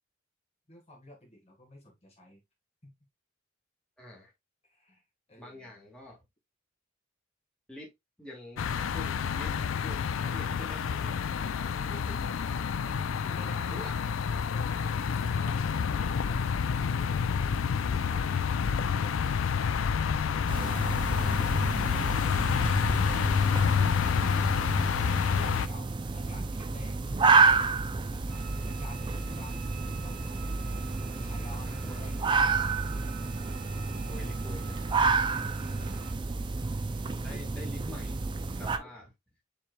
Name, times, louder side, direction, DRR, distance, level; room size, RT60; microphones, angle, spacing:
voice 1, 0.7-2.4 2.8-2.9 4.6-5.0 5.3-5.8 12.8-13.9 20.2-21.7 22.8-23.9 24.5-28.4 28.6-30.4 31.0-32.7 35.0-35.9 37.2-37.4, left 1 dB, 35° left, 1.4 m, -51 dB
voice 2, 4.0-4.3 5.4-6.2 7.7-7.9 8.2-9.5 9.8-12.2 13.7-14.1 23.2-23.7 31.7-32.1 34.1-35.0 36.9-38.2 38.6-39.1, left 1 dB, 5° left, 1.6 m, -47 dB
sound 1, 8.6-25.7, left 6 dB, 80° left, 0.4 m, -28 dB
sound 2, 20.5-38.8, right 4 dB, 25° right, 0.3 m, -30 dB
sound 3, 28.3-36.1, right 6 dB, 80° right, 1.9 m, -49 dB
7.2 x 3.2 x 2.2 m
head